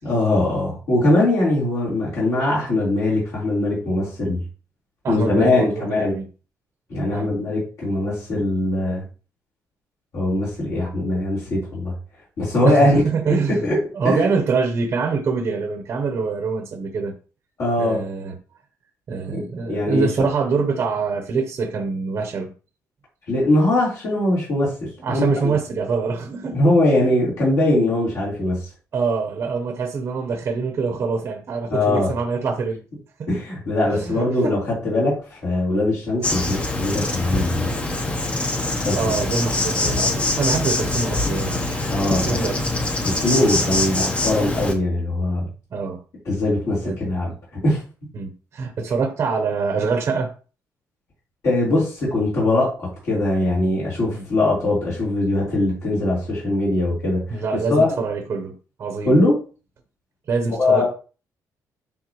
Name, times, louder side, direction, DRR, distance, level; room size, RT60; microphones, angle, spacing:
voice 1, 0.0-4.4 5.1-6.2 6.9-9.0 10.1-11.9 12.4-13.0 13.6-13.8 14.0-14.2 17.6-18.0 19.3-20.1 23.3-24.7 25.1-25.5 26.5-28.7 31.7-32.1 33.3-37.7 38.8-39.0 41.9-42.4 43.0-45.5 46.3-47.3 47.6-47.8 51.4-57.4 57.7-58.0 59.0-59.3 60.6-60.8, left 2 dB, 50° left, 4.0 m, -21 dB
voice 2, 5.0-6.2 7.1-7.3 12.6-13.6 13.9-17.1 17.8-18.4 19.1-22.5 25.0-26.6 27.0-27.1 28.9-32.8 33.2-33.3 33.9-34.6 38.9-42.6 43.2-43.8 45.7-46.0 46.8-47.0 48.1-50.3 54.1-54.3 57.3-58.5 58.8-59.2 60.3-60.8, right 4 dB, 40° right, 0.9 m, -25 dB
Insect, 36.2-44.7, left 2 dB, 20° left, 1.0 m, -24 dB
10.0 x 3.7 x 3.1 m
cardioid pair, 175°, 7 cm